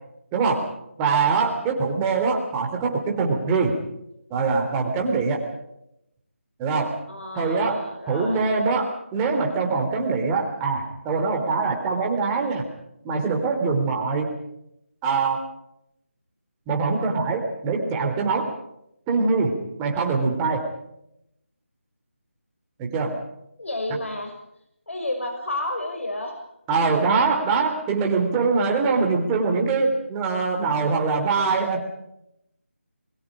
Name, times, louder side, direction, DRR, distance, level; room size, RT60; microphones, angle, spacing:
voice 1, 0.3-0.7 1.0-3.8 4.3-5.4 6.6-7.0 7.4-12.6 13.0-14.3 15.0-15.4 16.7-18.5 19.1-20.6 22.8-23.2 26.7-31.8, right 4 dB, 15° right, 2 dB, 3.5 m, -23 dB
voice 2, 7.1-8.4 23.6-24.4 24.9-26.5, left 1 dB, 65° left, 4 dB, 6.4 m, -31 dB
28.0 x 22.5 x 5.1 m, 0.80 s
figure-of-eight pair, 160°, 7 cm